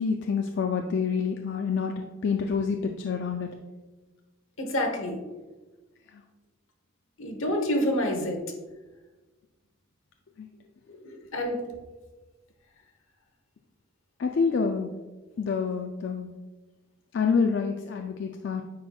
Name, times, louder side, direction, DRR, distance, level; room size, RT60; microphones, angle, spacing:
voice 1, 0.0-3.5 6.1-6.2 10.4-10.5 14.2-14.9 15.4-16.3 17.1-18.6, left 5 dB, 60° left, 4 dB, 0.4 m, -27 dB
voice 2, 4.6-5.2 7.2-8.4 11.0-11.6, left 1 dB, 75° left, 3 dB, 1.0 m, -28 dB
9.4 x 4.3 x 2.3 m, 1.2 s
head